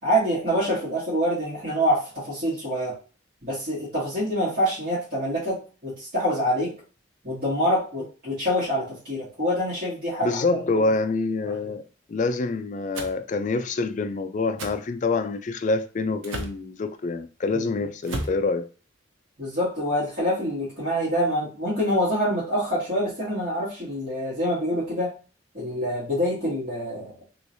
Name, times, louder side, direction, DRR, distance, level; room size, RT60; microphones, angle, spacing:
voice 1, 0.0-3.0 3.4-6.7 7.2-10.4 10.7-10.9 19.4-25.1 25.5-27.1, equal, 50° right, 1.7 m, -26 dB
voice 2, 10.2-11.8 12.1-18.7, left 3 dB, 40° left, 0.3 m, -26 dB
sound 1, 12.9-13.2 14.6-14.8 16.2-16.6 18.0-18.4, right 1 dB, 85° right, 0.6 m, -32 dB
3.1 x 3.0 x 2.6 m
head